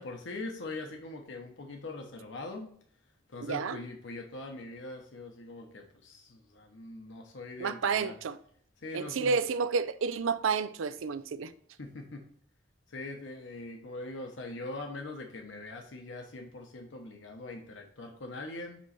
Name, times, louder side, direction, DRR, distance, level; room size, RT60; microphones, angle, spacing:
voice 1, 0.0-2.7 3.3-8.2 8.8-9.4 11.8-12.3 12.9-18.8, left 2 dB, 65° left, 0.9 m, -42 dB
voice 2, 3.4-3.8 7.6-8.4 8.9-11.5, right 5 dB, 85° right, 0.4 m, -30 dB
7.3 x 3.1 x 4.2 m
head